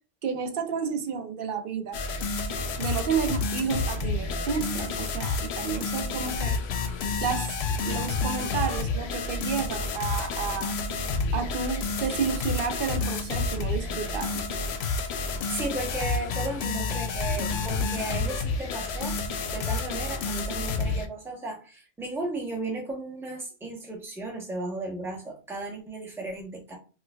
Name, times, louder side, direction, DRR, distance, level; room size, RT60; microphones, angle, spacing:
voice 1, 0.2-2.0 2.8-6.6 7.2-7.6 7.8-10.8 11.3-14.5, right 6 dB, 65° right, 0.8 m, -31 dB
sound 1, 1.9-21.1, left 4 dB, 85° left, 0.8 m, -29 dB
voice 2, 15.5-19.2 19.5-26.8, right 2 dB, 5° right, 0.7 m, -35 dB
4.6 x 2.3 x 2.2 m
omnidirectional pair, 1.0 m